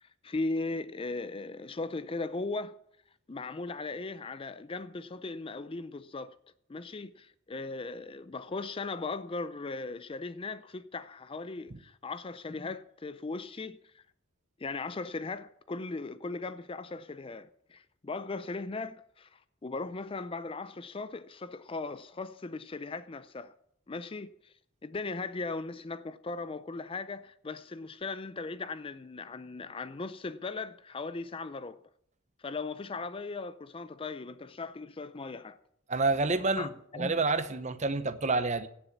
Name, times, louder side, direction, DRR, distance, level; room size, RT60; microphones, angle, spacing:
voice 1, 0.0-2.8 3.3-6.4 6.7-14.0 14.6-23.5 23.9-24.5 24.8-31.8 32.4-35.6 36.6-37.2, left 3 dB, 25° left, 0.4 m, -38 dB
voice 2, 35.9-36.7 37.0-38.7, right 3 dB, 35° right, 0.9 m, -28 dB
17.0 x 7.0 x 7.2 m
head